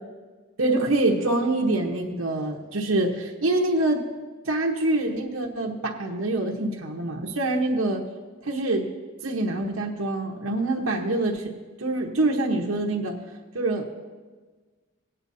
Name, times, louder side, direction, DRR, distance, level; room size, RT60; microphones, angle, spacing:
voice 1, 0.6-4.0 4.4-8.0 8.4-8.9 9.2-11.5 11.8-13.2 13.5-13.9, right 2 dB, 90° right, 1 dB, 1.1 m, -25 dB
17.0 x 8.9 x 2.7 m, 1.3 s
head